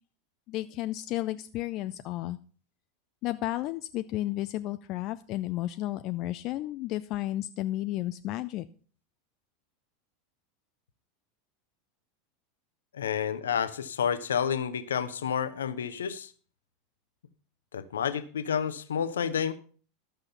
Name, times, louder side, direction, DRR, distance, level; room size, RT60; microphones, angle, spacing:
voice 1, 0.5-2.4 3.2-8.6, left 15 dB, 40° left, 11 dB, 0.4 m, -32 dB
voice 2, 12.9-16.3 17.7-19.5, left 8 dB, 70° left, 13 dB, 0.8 m, -30 dB
12.5 x 6.4 x 5.6 m, 0.41 s
figure-of-eight pair, 85°, 0 cm